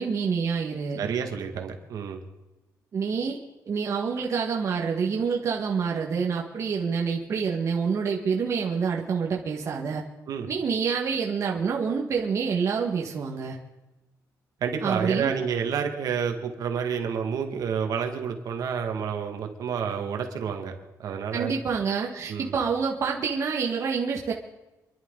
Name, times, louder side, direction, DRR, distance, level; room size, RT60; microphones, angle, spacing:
voice 1, 0.0-1.0 2.9-3.4 3.6-10.0 10.5-13.6 14.8-15.3 21.3-24.3, right 6 dB, 45° right, -1 dB, 1.6 m, -27 dB
voice 2, 1.0-2.2 10.3-10.5 14.6-20.7 21.0-21.5 22.3-22.5, right 7 dB, 65° right, 4 dB, 2.0 m, -29 dB
27.5 x 11.5 x 3.9 m, 1.1 s
cardioid pair, 155°, 7 cm